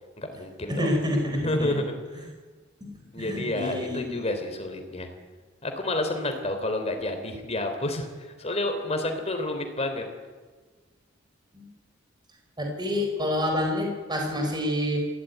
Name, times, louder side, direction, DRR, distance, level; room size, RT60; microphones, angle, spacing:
voice 1, 0.2-0.9 1.3-2.2 3.1-5.1 5.6-10.1, left 1 dB, 30° left, 5 dB, 3.6 m, -30 dB
voice 2, 0.7-1.8 2.8-4.2 11.5-11.7 12.6-15.0, left 1 dB, 20° right, 2 dB, 4.6 m, -28 dB
21.5 x 16.5 x 9.5 m, 1.4 s
head